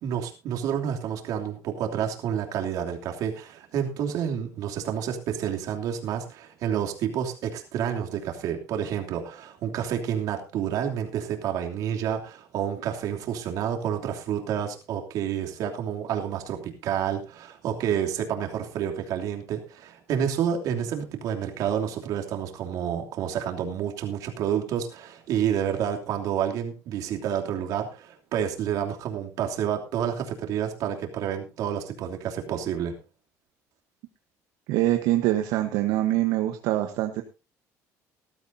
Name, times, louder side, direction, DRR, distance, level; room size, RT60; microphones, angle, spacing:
voice 1, 0.0-32.9, right 9 dB, 65° right, 2 dB, 3.0 m, -29 dB
voice 2, 34.7-37.2, right 14 dB, 85° right, 6 dB, 1.2 m, -24 dB
19.0 x 12.5 x 2.8 m, 0.28 s
cardioid pair, 130°, 7 cm